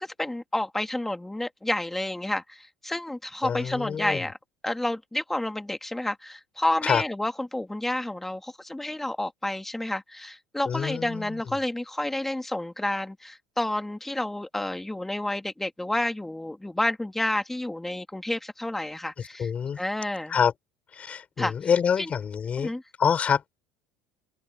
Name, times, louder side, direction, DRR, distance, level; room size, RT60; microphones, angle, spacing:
voice 1, 0.0-4.4 4.6-19.5 19.8-20.4 21.4-21.5 22.0-22.1 22.6-22.8, left 1 dB, 5° left, 2.2 m, -30 dB
voice 2, 3.4-4.2 6.8-7.0 10.6-11.4 19.4-19.8 20.3-20.5 20.9-22.7 23.0-23.5, left 7 dB, 30° left, 6.8 m, -26 dB
cardioid pair, 130°, 4 cm